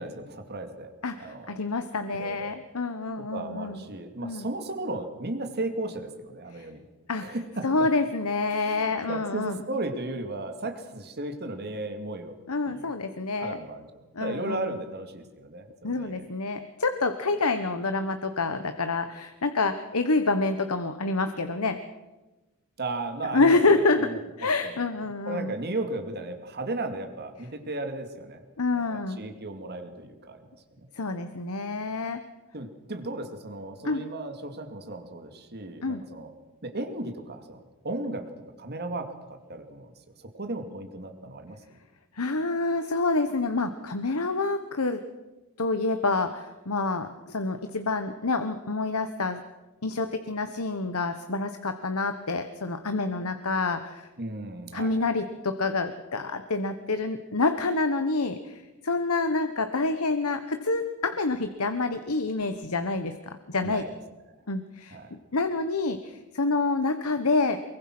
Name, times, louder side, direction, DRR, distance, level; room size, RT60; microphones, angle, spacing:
voice 1, 0.0-0.9 1.2-1.5 2.1-2.6 3.3-6.8 7.2-7.9 8.5-12.4 12.6-12.9 13.4-13.9 14.2-16.2 22.8-24.8 25.3-28.4 28.7-30.6 32.5-36.3 36.6-38.2 38.6-39.9 40.2-41.6 54.2-55.1 63.6-63.9 64.9-65.1, right 2 dB, 50° right, 6 dB, 2.5 m, -35 dB
voice 2, 1.0-3.8 4.2-4.5 6.5-6.7 7.1-7.3 7.6-9.6 12.5-13.6 14.1-14.7 15.8-21.8 23.3-24.1 24.4-25.5 28.6-29.2 30.9-32.2 33.8-34.0 35.8-36.0 42.1-45.0 45.6-49.4 49.8-54.1 54.7-63.9 64.5-65.0 65.3-67.6, left 3 dB, 70° left, 9 dB, 1.3 m, -27 dB
24.0 x 23.0 x 6.2 m, 1.1 s
head